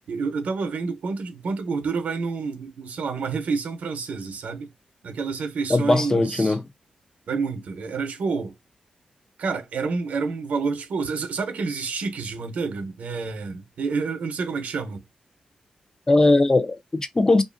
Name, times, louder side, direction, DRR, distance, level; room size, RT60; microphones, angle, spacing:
voice 1, 0.1-4.7 5.0-6.6 7.3-8.5 9.4-15.0, right 4 dB, 80° right, 0.7 m, -28 dB
voice 2, 5.7-6.6 16.1-17.4, left 2 dB, 25° left, 0.4 m, -19 dB
2.8 x 2.4 x 2.5 m
wide cardioid pair, 105°, 2 cm